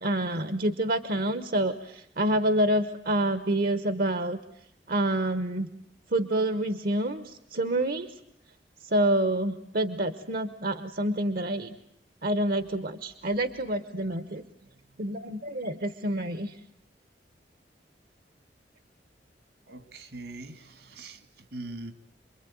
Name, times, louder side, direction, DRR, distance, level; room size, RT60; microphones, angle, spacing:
voice 1, 0.0-4.4 4.9-5.7 6.1-8.1 8.8-11.7 12.2-14.4 15.0-16.6, right 1 dB, 55° right, 1.1 m, -27 dB
voice 2, 14.6-15.0 19.7-21.9, right 2 dB, 75° right, 2.5 m, -43 dB
28.5 x 22.5 x 9.2 m
head